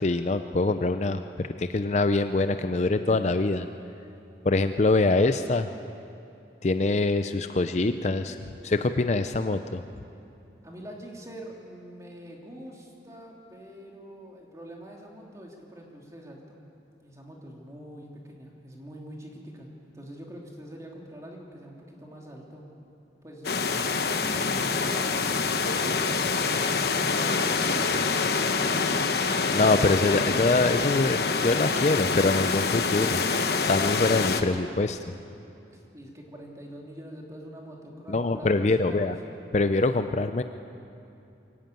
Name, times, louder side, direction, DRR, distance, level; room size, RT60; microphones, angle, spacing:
voice 1, 0.0-3.7 4.4-5.7 6.6-8.4 8.6-9.8 29.5-33.2 33.6-35.0 38.1-39.1 39.5-40.4, left 2 dB, 40° left, 9 dB, 0.5 m, -24 dB
voice 2, 10.6-16.6 17.0-22.7 23.2-26.4 26.9-28.8 35.7-39.1, equal, 20° right, -1 dB, 2.8 m, -44 dB
sound 1, 23.4-34.4, left 4 dB, 60° left, 1.1 m, -26 dB
23.5 x 14.5 x 9.1 m, 2.7 s
head